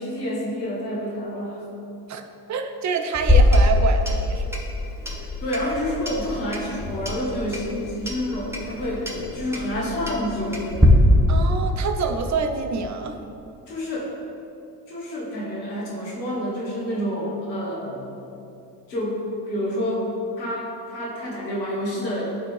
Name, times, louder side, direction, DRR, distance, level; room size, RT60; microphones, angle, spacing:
voice 1, 0.0-1.6 5.4-11.0 13.7-14.1 14.9-18.1 18.9-20.1 20.4-22.3, equal, 90° left, -4 dB, 1.5 m, -28 dB
voice 2, 2.5-4.5 11.3-13.2, right 5 dB, 35° right, 5 dB, 0.8 m, -26 dB
Clock, 3.1-10.9, left 1 dB, 5° right, 1.3 m, -24 dB
11.5 x 4.2 x 3.2 m, 2.7 s
hypercardioid pair, 55°, 50 cm